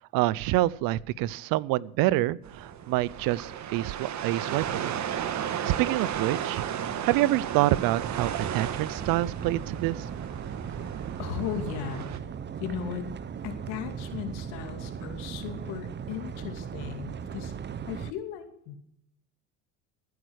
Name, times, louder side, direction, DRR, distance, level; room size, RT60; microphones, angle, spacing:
voice 1, 0.1-5.0 5.6-6.6 7.0-10.1, right 16 dB, 65° right, 23 dB, 0.6 m, -27 dB
sound 1, 2.4-12.2, right 9 dB, 45° right, 1.5 m, -34 dB
sound 2, 8.0-18.1, right 7 dB, 30° right, 0.8 m, -37 dB
voice 2, 11.2-12.1 12.6-13.1 13.4-17.5 17.9-18.8, left 9 dB, 80° left, 7 dB, 2.6 m, -36 dB
15.0 x 9.6 x 6.4 m, 0.71 s
supercardioid pair, 105°, 38 cm